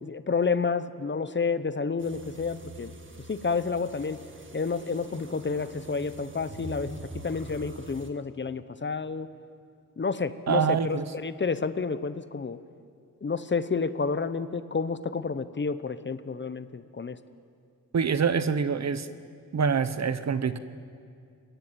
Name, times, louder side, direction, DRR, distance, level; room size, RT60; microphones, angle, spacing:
voice 1, 0.0-2.9 3.3-4.2 4.5-7.0 7.2-9.3 10.0-12.6 13.2-17.2, left 4 dB, 35° left, 13 dB, 0.8 m, -30 dB
sound 1, 2.0-8.1, right 2 dB, 35° right, 2.1 m, -45 dB
voice 2, 10.5-11.0 17.9-19.1 19.5-20.6, right 6 dB, 50° right, 13 dB, 1.0 m, -25 dB
22.0 x 17.0 x 7.5 m, 2.4 s
cardioid pair, 75°, 35 cm